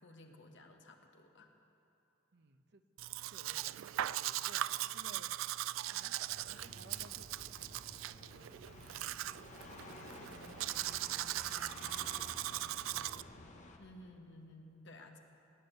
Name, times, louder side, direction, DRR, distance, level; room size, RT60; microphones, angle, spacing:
voice 1, 0.0-1.5 13.8-15.2, left 1 dB, 65° left, 3 dB, 1.5 m, -55 dB
voice 2, 2.3-2.8 3.1-4.6 4.9-5.3 5.9-6.2 6.5-9.2 9.5-9.6 9.9-11.6, right 3 dB, 60° right, 8 dB, 0.9 m, -59 dB
Domestic sounds home sounds, 3.0-13.2, right 14 dB, 80° right, 0.3 m, -40 dB
sound 1, 6.3-13.8, left 2 dB, 40° left, 1.2 m, -53 dB
18.5 x 9.6 x 8.1 m, 2.8 s
head